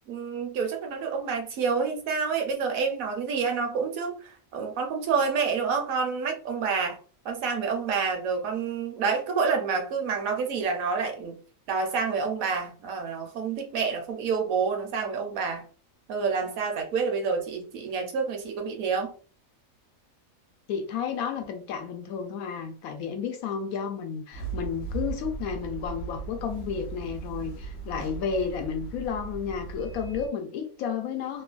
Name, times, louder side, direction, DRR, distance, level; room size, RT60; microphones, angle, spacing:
voice 1, 0.1-7.0 7.2-11.4 11.7-15.7 16.1-19.1, right 5 dB, 75° right, 1.1 m, -28 dB
voice 2, 20.7-31.4, left 7 dB, 85° left, 1.1 m, -32 dB
sound 1, 24.3-30.3, right 5 dB, 60° left, 0.9 m, -37 dB
3.0 x 2.2 x 2.4 m
omnidirectional pair, 1.5 m